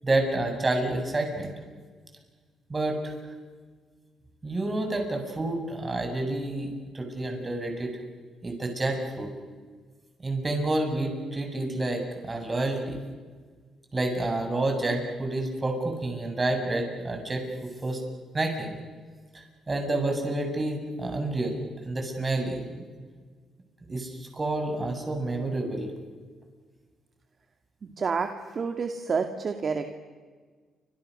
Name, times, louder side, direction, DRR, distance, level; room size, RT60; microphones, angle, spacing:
voice 1, 0.0-1.5 2.7-3.1 4.4-6.7 6.9-8.0 8.4-9.3 10.2-13.0 13.9-18.0 18.3-18.8 19.7-22.8 23.9-25.9, right 2 dB, 25° right, 4 dB, 7.6 m, -29 dB
voice 2, 27.8-28.3 28.6-30.0, right 5 dB, 45° right, 6 dB, 2.2 m, -29 dB
29.5 x 26.5 x 6.7 m, 1.5 s
cardioid pair, 90°, 0 cm